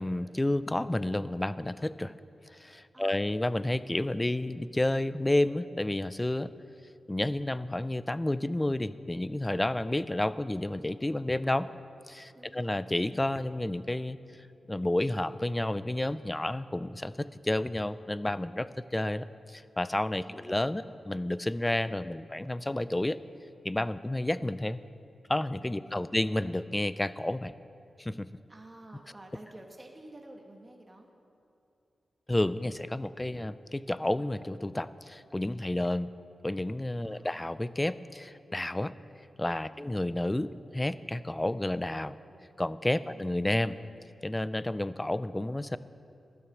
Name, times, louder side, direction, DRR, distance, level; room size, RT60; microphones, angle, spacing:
voice 1, 0.0-2.1 2.5-6.5 7.1-11.7 12.1-14.2 14.7-23.2 23.6-24.8 25.3-27.5 28.0-28.3 32.3-36.1 36.4-38.9 39.4-42.2 42.6-43.8 44.2-45.8, left 1 dB, 15° left, 15 dB, 0.4 m, -30 dB
voice 2, 2.9-3.5 12.3-12.8 20.3-21.0 25.8-26.3 28.5-31.1 37.0-37.5 39.7-40.0 43.0-43.3, right 1 dB, 20° right, 2 dB, 1.3 m, -51 dB
12.0 x 9.8 x 7.1 m, 2.7 s
wide cardioid pair, 105°, 0 cm